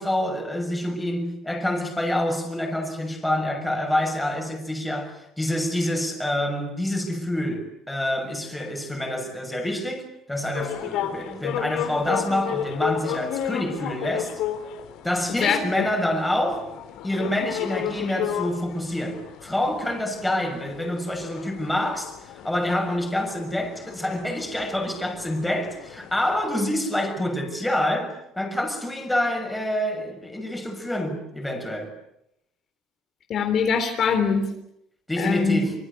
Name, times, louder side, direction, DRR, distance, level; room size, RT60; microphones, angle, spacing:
voice 1, 0.0-14.3 15.0-16.7 17.0-31.9 35.1-35.7, left 1 dB, 5° left, 6.6 m, -27 dB
sound 1, 10.5-26.5, left 10 dB, 75° left, 4.3 m, -33 dB
voice 2, 15.4-15.9 33.3-34.5 35.2-35.6, left 6 dB, 45° left, 3.6 m, -23 dB
26.0 x 25.5 x 8.3 m
cardioid pair, 130°, 0 cm